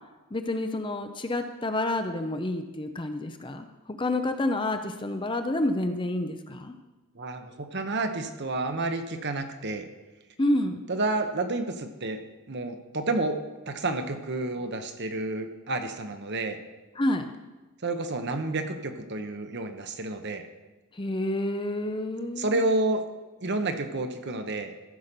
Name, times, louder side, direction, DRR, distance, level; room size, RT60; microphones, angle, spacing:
voice 1, 0.3-6.7 10.4-10.8 17.0-17.2 20.9-22.6, left 1 dB, 20° left, 7 dB, 0.7 m, -29 dB
voice 2, 7.1-9.9 10.9-12.2 12.5-13.4 13.7-16.6 17.8-20.4 22.4-23.1 23.4-24.7, right 2 dB, 50° right, 7 dB, 1.0 m, -30 dB
14.5 x 5.7 x 6.8 m, 1.2 s
head